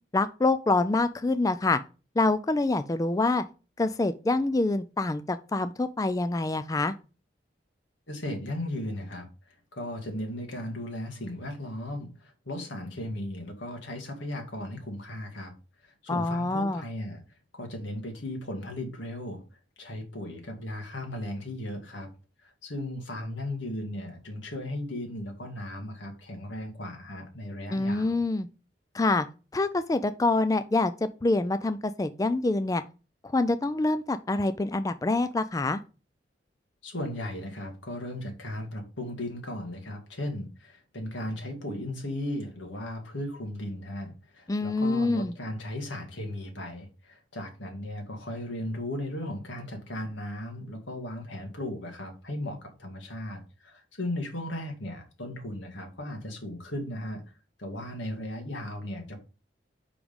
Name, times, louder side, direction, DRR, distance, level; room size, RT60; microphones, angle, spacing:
voice 1, 0.1-1.8 2.2-3.4 3.8-6.9 16.1-16.8 27.7-28.5 28.9-29.3 29.5-32.8 33.2-35.8 44.5-45.3, left 2 dB, 20° left, 0.3 m, -26 dB
voice 2, 8.1-9.3 9.7-15.5 15.8-17.2 17.5-19.4 19.8-22.1 22.6-28.2 36.8-57.2 57.6-59.2, left 1 dB, 90° left, 1.9 m, -36 dB
5.0 x 5.0 x 5.3 m
head